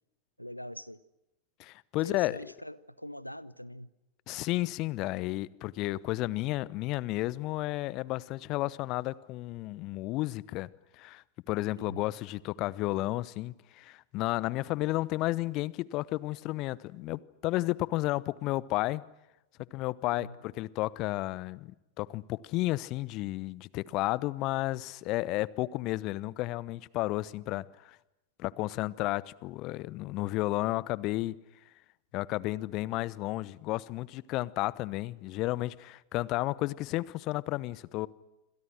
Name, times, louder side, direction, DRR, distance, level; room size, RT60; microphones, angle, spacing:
voice 1, 0.4-1.0 2.0-3.9 11.8-12.1 20.1-20.4, equal, 90° left, 0.8 m, -43 dB
voice 2, 1.6-2.4 4.3-10.7 11.0-19.0 19.7-28.0 28.4-31.4 32.1-38.1, left 18 dB, 40° left, 0.9 m, -32 dB
27.5 x 27.0 x 6.2 m
figure-of-eight pair, 90°, 0 cm